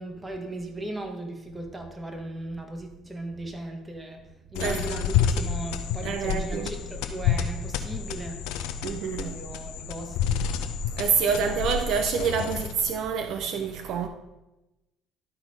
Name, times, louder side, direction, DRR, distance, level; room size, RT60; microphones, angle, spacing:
voice 1, 0.0-8.5 9.2-10.4, right 2 dB, 20° right, 1.6 m, -37 dB
sound 1, 4.5-13.0, left 8 dB, 85° left, 0.7 m, -29 dB
voice 2, 4.6-5.0 6.0-6.7 8.8-9.4 10.9-14.1, right 6 dB, 70° right, 0.6 m, -27 dB
12.0 x 4.1 x 4.9 m
supercardioid pair, 80°, 0 cm